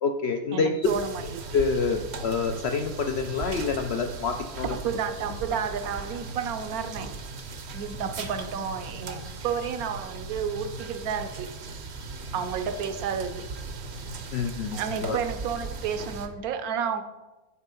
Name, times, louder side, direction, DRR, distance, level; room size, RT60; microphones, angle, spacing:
voice 1, 0.0-0.9 1.5-4.8 14.3-15.2, left 5 dB, 75° left, 5 dB, 0.6 m, -27 dB
voice 2, 0.5-1.5 4.6-7.1 7.7-11.5 12.3-13.4 14.8-17.0, right 7 dB, 75° right, 8 dB, 1.1 m, -31 dB
sound 1, 0.8-16.3, right 3 dB, 55° right, 0.8 m, -38 dB
9.0 x 4.3 x 5.3 m, 1.1 s
omnidirectional pair, 1.6 m